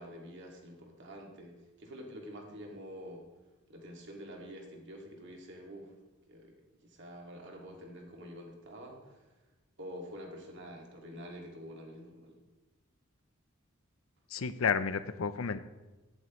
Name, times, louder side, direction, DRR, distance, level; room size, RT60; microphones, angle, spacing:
voice 1, 0.0-3.2 3.7-5.9 6.3-6.6 6.8-9.3 9.8-12.4, equal, 60° right, 1 dB, 2.1 m, -47 dB
voice 2, 14.3-15.6, left 6 dB, 85° left, 13 dB, 0.6 m, -31 dB
15.5 x 8.2 x 3.1 m, 1.1 s
head